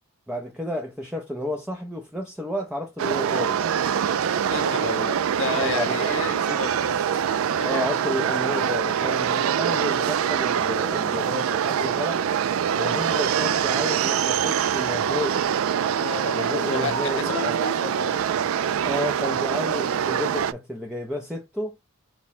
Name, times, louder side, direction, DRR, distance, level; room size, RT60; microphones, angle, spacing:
voice 1, 0.3-3.6 4.8-5.1 5.5-6.1 7.6-12.2 12.7-15.5 16.3-17.5 18.8-21.8, left 1 dB, 5° right, 0.5 m, -31 dB
sound 1, 3.0-20.5, right 8 dB, 75° right, 0.3 m, -24 dB
voice 2, 4.5-7.9 9.7-9.9 16.0-18.2, left 5 dB, 60° left, 0.5 m, -32 dB
4.5 x 2.1 x 4.1 m
head